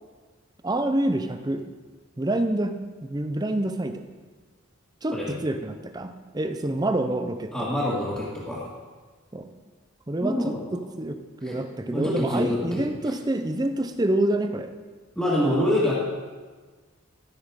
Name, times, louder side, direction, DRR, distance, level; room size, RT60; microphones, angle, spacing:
voice 1, 0.6-1.7 2.2-2.7 3.0-4.1 5.0-7.7 9.3-9.5 10.1-14.7, right 1 dB, 20° right, 8 dB, 0.5 m, -27 dB
voice 2, 5.1-5.4 7.5-8.7 10.2-10.8 11.4-11.6 11.9-12.9 15.2-15.9, left 1 dB, 5° left, -10 dB, 1.8 m, -26 dB
13.5 x 6.2 x 4.8 m, 1.4 s
head